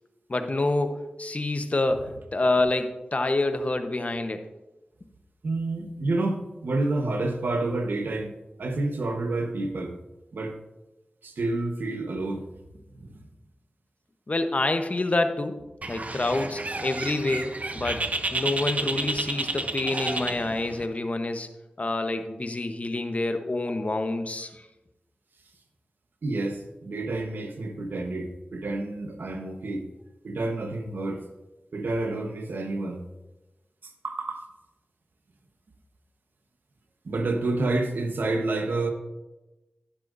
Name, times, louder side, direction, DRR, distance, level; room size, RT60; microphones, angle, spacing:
voice 1, 0.3-4.5 14.3-15.6 15.9-21.5 21.8-24.6, left 2 dB, 45° left, 7 dB, 0.9 m, -27 dB
voice 2, 5.4-8.3 8.6-9.9 10.3-10.5 11.2-12.4 12.9-13.3 17.9-18.0 26.2-29.8 30.2-31.2 31.7-33.0 34.0-34.4 37.0-38.9, right 2 dB, 80° right, 4 dB, 1.1 m, -29 dB
Bird, 15.8-20.9, right 2 dB, 45° right, 0.7 m, -31 dB
11.0 x 10.0 x 2.6 m, 1.0 s
cardioid pair, 45°, 3 cm